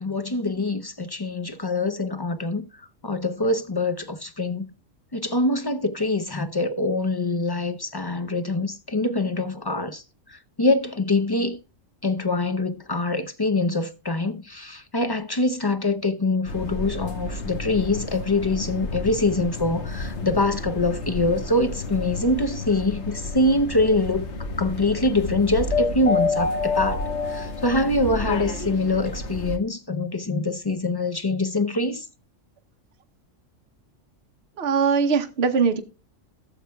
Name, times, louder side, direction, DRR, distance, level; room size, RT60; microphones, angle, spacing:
voice 1, 0.0-2.7 3.0-4.7 5.1-10.0 10.3-11.6 12.0-24.3 24.6-27.0 27.3-32.1, left 2 dB, 40° left, 0.3 m, -24 dB
sound 1, 16.4-29.6, left 3 dB, 60° left, 1.5 m, -30 dB
voice 2, 34.6-35.8, right 5 dB, 55° right, 1.2 m, -21 dB
16.5 x 7.2 x 2.3 m
omnidirectional pair, 1.3 m